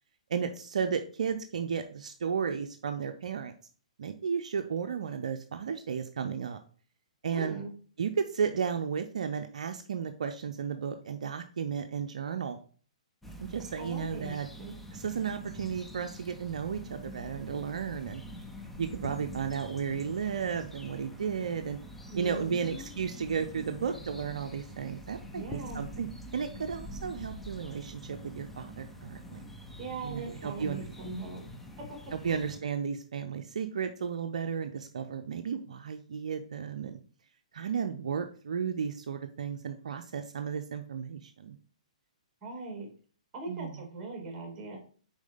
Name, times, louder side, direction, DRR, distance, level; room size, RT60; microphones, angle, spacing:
voice 1, 0.3-3.5 4.0-6.6 7.2-7.6 8.0-12.6 13.4-14.5 14.9-18.2 18.8-21.8 22.2-29.5 30.0-31.2 32.1-37.0 37.5-41.6 43.5-43.8, right 6 dB, 65° right, 7 dB, 0.5 m, -34 dB
voice 2, 7.3-7.7 13.8-14.8 22.1-22.9 25.3-25.8 29.8-31.4 32.2-32.4 42.4-42.9 43.3-44.8, right 3 dB, 20° right, 1 dB, 2.6 m, -40 dB
sound 1, 13.2-32.6, equal, 5° left, 0.8 m, -45 dB
6.1 x 4.2 x 3.8 m, 0.42 s
figure-of-eight pair, 125°, 4 cm